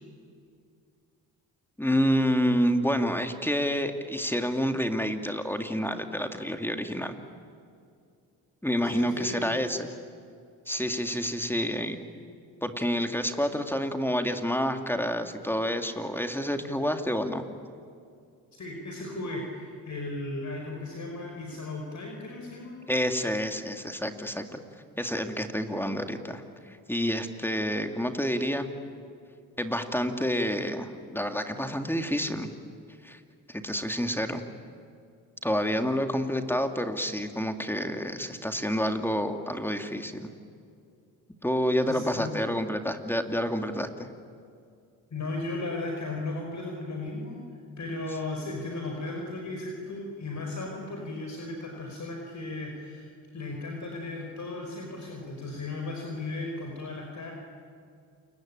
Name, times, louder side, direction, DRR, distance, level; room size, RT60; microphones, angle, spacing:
voice 1, 1.8-7.1 8.6-9.9 10.7-12.0 12.6-17.4 22.9-24.6 25.0-28.7 29.6-32.5 33.0-33.2 33.5-34.5 35.4-40.3 41.4-44.1, equal, 5° left, 6 dB, 2.5 m, -28 dB
voice 2, 8.8-9.5 18.6-22.8 41.9-42.3 45.1-47.4 47.8-57.3, left 2 dB, 45° left, 1 dB, 5.5 m, -36 dB
29.0 x 22.0 x 9.0 m, 2.4 s
supercardioid pair, 65°, 40 cm